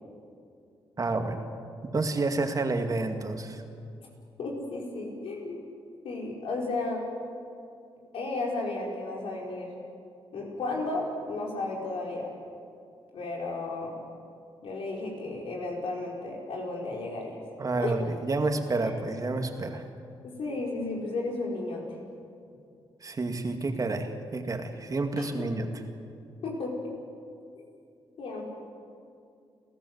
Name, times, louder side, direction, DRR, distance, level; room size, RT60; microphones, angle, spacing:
voice 1, 1.0-1.4 1.9-3.6 17.6-19.9 23.0-25.7, right 3 dB, 40° right, 5 dB, 2.2 m, -29 dB
voice 2, 4.4-5.7 6.0-7.1 8.1-9.7 10.3-12.3 13.1-13.9 14.6-17.4 17.7-18.0 18.8-18.9 20.2-21.8 25.1-25.5 26.4-26.8 28.2-28.4, left 2 dB, 80° left, -1 dB, 5.3 m, -33 dB
30.0 x 14.0 x 8.2 m, 2.4 s
cardioid pair, 80°, 9 cm